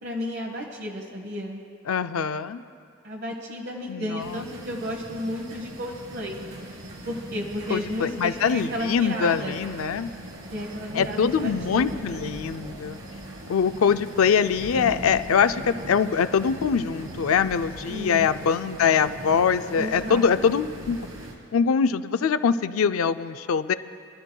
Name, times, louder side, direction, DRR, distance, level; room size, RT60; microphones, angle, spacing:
voice 1, 0.0-1.6 3.0-6.4 7.0-9.6 10.5-12.0 17.9-18.3 19.8-20.2, equal, 55° right, 0 dB, 1.2 m, -32 dB
voice 2, 1.9-2.6 3.9-4.4 7.7-10.1 10.9-13.0 13.5-21.0 21.5-23.7, left 6 dB, 90° left, 12 dB, 0.4 m, -23 dB
sound 1, 4.2-21.3, right 1 dB, 90° right, 2.7 m, -40 dB
27.0 x 13.0 x 2.3 m, 2.3 s
head